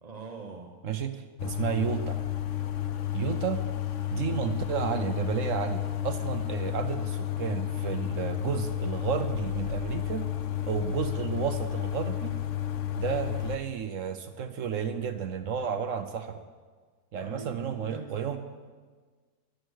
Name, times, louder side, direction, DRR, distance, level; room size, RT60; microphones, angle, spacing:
voice 1, 0.0-0.8 17.2-18.4, right 5 dB, 35° right, 3 dB, 0.8 m, -42 dB
voice 2, 0.8-2.2 3.1-3.6 4.1-10.3 10.7-12.3 12.9-16.4 17.1-18.4, right 7 dB, 60° right, 9 dB, 1.0 m, -32 dB
sound 1, 1.4-13.6, left 12 dB, 60° left, 0.9 m, -32 dB
13.0 x 11.0 x 6.4 m, 1.5 s
omnidirectional pair, 1.7 m